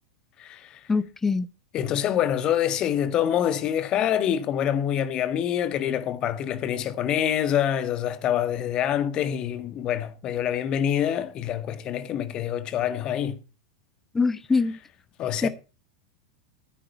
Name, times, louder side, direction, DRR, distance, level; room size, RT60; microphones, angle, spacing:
voice 1, 0.4-0.9 1.7-13.4 15.2-15.5, left 10 dB, 35° left, 1.7 m, -26 dB
voice 2, 0.9-1.5 14.1-14.7 15.4-15.5, left 4 dB, 15° left, 1.0 m, -23 dB
14.0 x 9.9 x 4.3 m
figure-of-eight pair, 90°, 2 cm